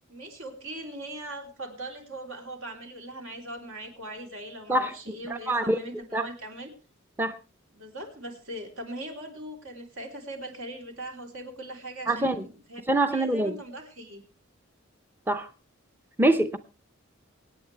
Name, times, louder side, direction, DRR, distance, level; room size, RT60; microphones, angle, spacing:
voice 1, 0.1-6.7 7.7-12.8 13.1-14.2, right 1 dB, 75° right, 3.5 m, -40 dB
voice 2, 5.3-5.8 6.1-6.3 7.2-7.4 12.1-12.4 12.9-13.6 15.3-15.5 16.2-16.6, right 1 dB, 10° right, 0.6 m, -24 dB
25.0 x 8.9 x 3.3 m
head